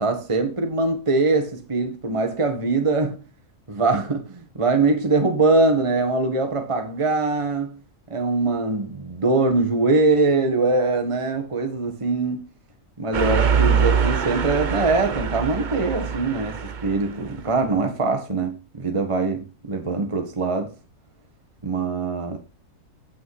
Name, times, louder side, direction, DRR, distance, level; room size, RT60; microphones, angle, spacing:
voice 1, 0.0-3.2 3.7-7.8 8.1-12.5 13.0-20.7 21.6-22.4, right 3 dB, 20° right, 1.5 m, -22 dB
sound 1, 13.1-17.3, right 6 dB, 45° right, 0.7 m, -23 dB
9.2 x 8.6 x 4.8 m
omnidirectional pair, 1.6 m